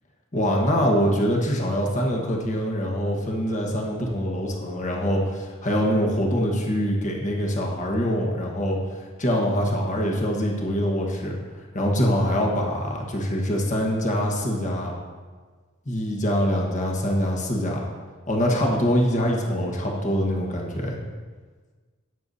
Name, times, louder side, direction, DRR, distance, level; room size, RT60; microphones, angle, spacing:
voice 1, 0.3-11.4 11.7-14.9 15.8-17.8 18.3-21.0, equal, 35° left, -1 dB, 1.4 m, -24 dB
17.0 x 6.7 x 2.7 m, 1.4 s
head